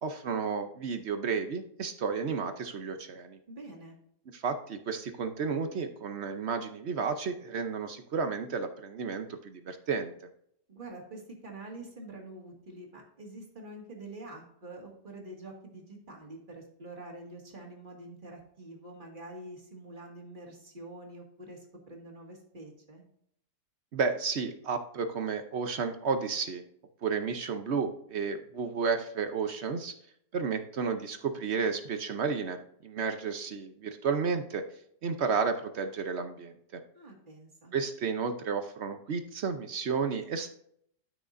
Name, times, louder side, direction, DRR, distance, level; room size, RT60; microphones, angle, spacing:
voice 1, 0.0-3.4 4.3-10.1 23.9-26.6 27.0-29.9 30.3-34.6 35.0-36.8 37.7-40.5, right 5 dB, 55° right, 8 dB, 0.8 m, -32 dB
voice 2, 3.5-4.0 10.7-23.0 36.9-37.7, right 2 dB, 30° right, 0 dB, 2.1 m, -46 dB
12.5 x 6.1 x 2.6 m, 0.69 s
omnidirectional pair, 1.9 m